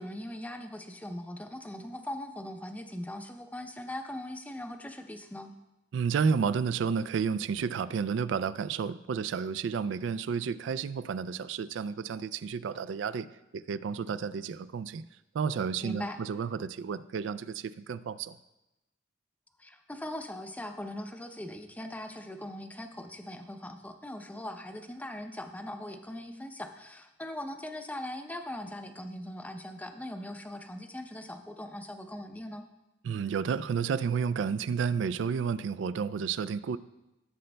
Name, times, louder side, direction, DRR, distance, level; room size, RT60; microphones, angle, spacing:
voice 1, 0.0-5.5 15.8-16.2 19.6-32.7, left 1 dB, 10° left, 6 dB, 0.5 m, -40 dB
voice 2, 5.9-13.3 13.5-15.0 15.3-18.4 33.0-36.8, right 6 dB, 80° right, 15 dB, 0.3 m, -31 dB
15.0 x 7.7 x 2.2 m, 0.99 s
head